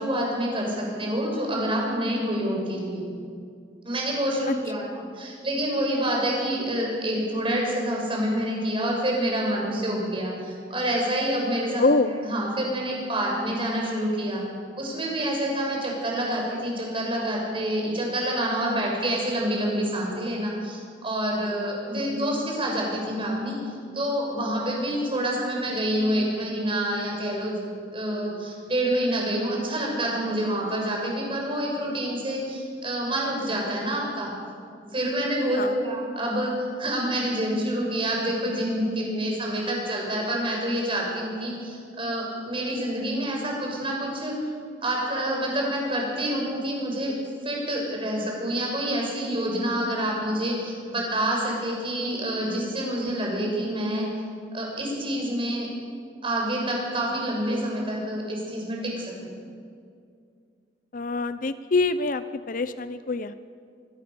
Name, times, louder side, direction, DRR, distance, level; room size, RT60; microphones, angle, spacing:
voice 1, 0.0-3.1 3.8-14.4 14.8-23.6 23.9-27.6 27.9-34.3 34.9-36.5 36.8-44.3 44.8-47.1 47.4-54.1 54.5-55.7 56.2-59.3, right 1 dB, 30° right, -1 dB, 6.7 m, -27 dB
voice 2, 11.8-12.1 35.6-35.9 60.9-63.3, left 3 dB, 50° left, 12 dB, 0.7 m, -25 dB
24.5 x 20.0 x 7.0 m, 2.3 s
head